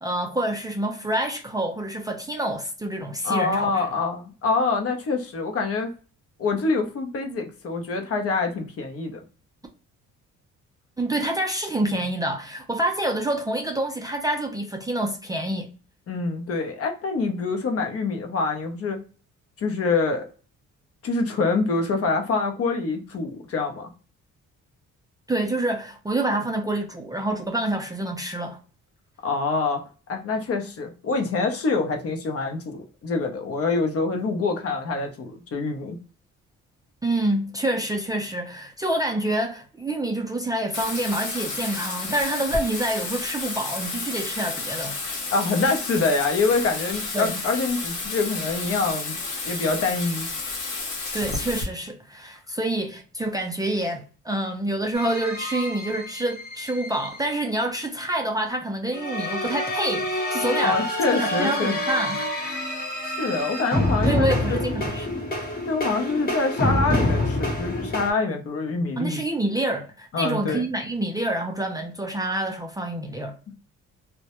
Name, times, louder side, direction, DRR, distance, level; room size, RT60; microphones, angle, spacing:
voice 1, 0.0-3.8 11.0-15.7 25.3-28.6 37.0-45.0 47.1-47.4 51.1-60.8 61.1-62.6 64.1-65.1 69.0-73.5, right 1 dB, 15° right, 0.4 m, -27 dB
voice 2, 3.2-5.9 6.4-9.2 16.1-19.0 19.6-20.2 21.0-23.9 29.2-29.8 30.1-36.0 45.3-49.2 49.4-50.3 60.6-61.8 63.0-64.6 65.7-69.2 70.1-70.6, left 3 dB, 50° left, 0.6 m, -25 dB
Bathtub (filling or washing), 40.7-51.6, left 3 dB, 80° left, 0.9 m, -31 dB
sound 1, 54.9-57.2 58.9-68.1, left 1 dB, 30° left, 0.9 m, -27 dB
2.1 x 2.1 x 2.8 m
cardioid pair, 90°, 30 cm